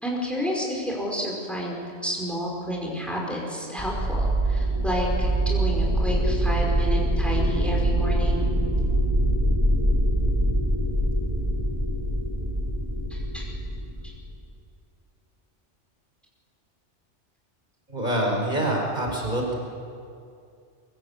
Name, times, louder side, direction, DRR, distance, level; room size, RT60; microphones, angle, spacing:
voice 1, 0.0-8.5 13.1-13.5 14.0-14.1, equal, ahead, -2 dB, 5.2 m, -30 dB
sound 1, 3.8-14.4, right 1 dB, 20° right, 3.1 m, -24 dB
voice 2, 17.9-19.5, right 1 dB, 40° right, -1 dB, 4.9 m, -25 dB
24.0 x 23.5 x 8.4 m, 2.4 s
omnidirectional pair, 1.2 m